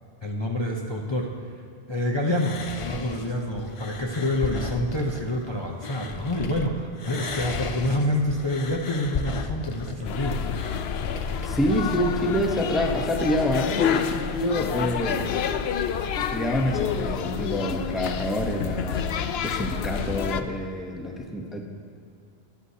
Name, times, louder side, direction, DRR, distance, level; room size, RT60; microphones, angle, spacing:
voice 1, 0.2-1.3 1.9-10.4, left 1 dB, 30° left, -1 dB, 0.8 m, -27 dB
sound 1, 2.3-6.7 7.0-11.5, left 4 dB, 45° left, 0.4 m, -35 dB
sound 2, 10.0-20.4, left 7 dB, 70° left, 0.8 m, -28 dB
voice 2, 11.4-15.3 16.3-19.1 19.4-21.6, equal, ahead, 1 dB, 0.8 m, -27 dB
22.0 x 7.9 x 2.8 m, 2.5 s
omnidirectional pair, 1.1 m